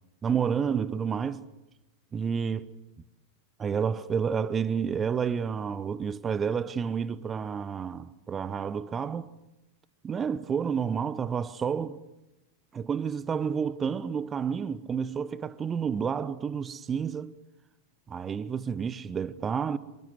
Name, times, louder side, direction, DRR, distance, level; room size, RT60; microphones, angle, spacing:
voice 1, 0.2-1.5 2.1-2.7 3.6-9.3 10.0-12.0 12.7-17.3 18.1-19.8, right 6 dB, 20° right, 1.0 m, -30 dB
26.5 x 23.5 x 7.9 m
figure-of-eight pair, 90°, 0 cm